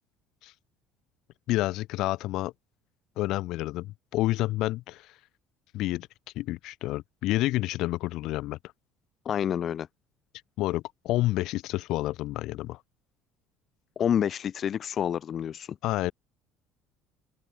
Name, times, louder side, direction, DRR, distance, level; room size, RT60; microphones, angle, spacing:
voice 1, 1.5-2.5 3.2-5.1 5.7-6.1 6.4-8.6 10.6-12.8 15.8-16.1, left 17 dB, 65° left, 0.8 m, -29 dB
voice 2, 9.3-9.9 14.0-15.8, left 9 dB, 40° left, 0.5 m, -28 dB
open air
cardioid pair, 125°, 0 cm